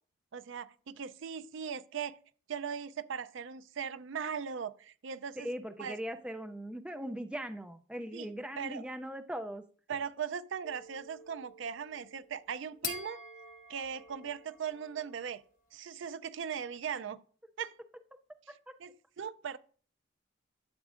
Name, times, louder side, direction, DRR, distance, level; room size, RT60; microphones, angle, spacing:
voice 1, 0.3-2.2 2.5-5.5 5.8-6.0 8.1-8.3 8.6-8.8 9.9-13.2 13.7-15.4 15.7-17.2 17.6-17.7 18.8-19.6, right 7 dB, 65° right, 0.4 m, -39 dB
voice 2, 5.4-9.6 18.5-18.6, equal, 5° right, 0.4 m, -40 dB
sound 1, 10.6-15.5, left 4 dB, 40° left, 1.0 m, -46 dB
12.0 x 7.2 x 2.5 m
head